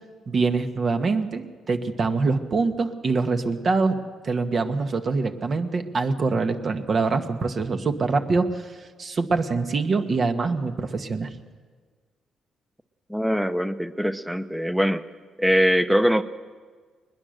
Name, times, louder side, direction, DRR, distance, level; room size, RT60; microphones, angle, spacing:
voice 1, 0.3-4.0 4.2-11.3, right 4 dB, 45° right, 6 dB, 1.5 m, -24 dB
voice 2, 13.1-15.1 15.4-16.2, equal, 5° right, 12 dB, 0.9 m, -22 dB
21.0 x 20.5 x 6.7 m, 1.5 s
cardioid pair, 90°, 0 cm